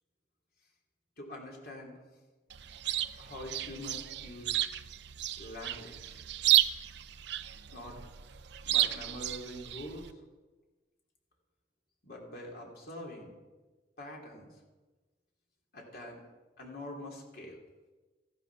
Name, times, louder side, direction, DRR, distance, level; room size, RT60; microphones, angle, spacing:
voice 1, 1.2-2.0 3.2-4.5 5.4-6.2 7.7-8.0 8.6-10.1 12.0-13.3 14.0-14.5 15.7-16.2 16.6-17.6, left 1 dB, 55° left, -1 dB, 3.4 m, -44 dB
Chirp tweet, 2.5-10.1, right 14 dB, 65° right, 0.6 m, -32 dB
15.5 x 11.0 x 6.2 m, 1.2 s
head